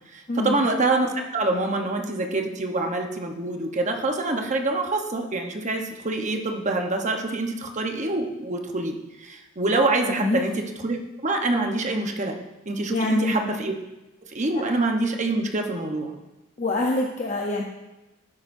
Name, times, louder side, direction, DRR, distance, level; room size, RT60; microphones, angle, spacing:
voice 1, 0.1-11.0 11.2-12.4 12.7-13.7 14.3-16.2, right 2 dB, 35° right, 3 dB, 1.0 m, -26 dB
voice 2, 10.1-10.5 12.9-13.3 16.6-17.6, left 2 dB, 35° left, -1 dB, 0.8 m, -25 dB
12.0 x 9.6 x 2.7 m, 1.0 s
head